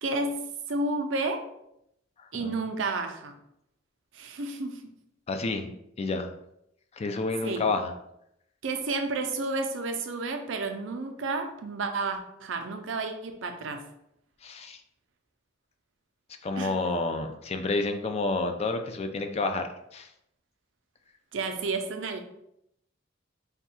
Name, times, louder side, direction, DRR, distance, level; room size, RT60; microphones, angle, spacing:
voice 1, 0.0-1.4 2.3-3.4 4.1-4.8 7.4-7.6 8.6-13.9 16.6-17.0 21.3-22.2, right 3 dB, 75° right, 6 dB, 0.5 m, -31 dB
voice 2, 2.2-2.6 5.3-6.3 6.9-7.9 14.4-14.8 16.4-20.1, left 3 dB, 35° left, 6 dB, 0.3 m, -30 dB
3.5 x 2.3 x 4.1 m, 0.80 s
head